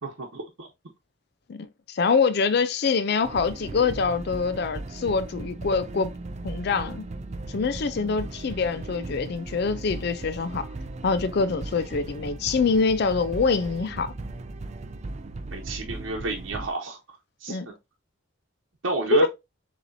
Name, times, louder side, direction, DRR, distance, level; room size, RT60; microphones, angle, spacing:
voice 1, 0.0-0.7 15.5-17.0 17.4-17.7 18.8-19.3, right 2 dB, 85° right, 0.9 m, -30 dB
voice 2, 1.5-6.1 6.4-7.0 7.5-10.7 11.0-14.1 17.5-17.7 19.1-19.3, left 4 dB, 55° left, 0.4 m, -25 dB
sound 1, 3.2-16.7, right 2 dB, 35° right, 0.4 m, -37 dB
6.8 x 2.9 x 2.6 m
head